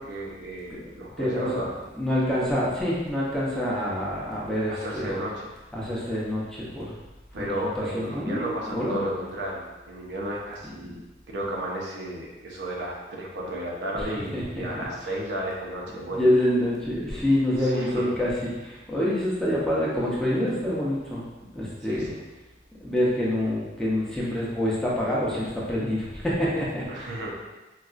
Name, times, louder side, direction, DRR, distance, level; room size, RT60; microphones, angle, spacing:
voice 1, 0.0-1.7 4.7-5.5 7.3-11.0 11.3-16.2 17.6-18.1 21.8-22.2 26.9-27.3, right 1 dB, 85° right, -3 dB, 0.6 m, -33 dB
voice 2, 1.2-1.7 1.9-5.1 5.7-6.9 7.4-9.1 10.8-11.0 13.9-14.1 14.3-14.9 16.1-18.3 18.6-21.3 21.5-22.1 22.8-27.2, left 1 dB, 5° left, -7 dB, 0.6 m, -26 dB
4.0 x 2.3 x 2.4 m, 1.1 s
head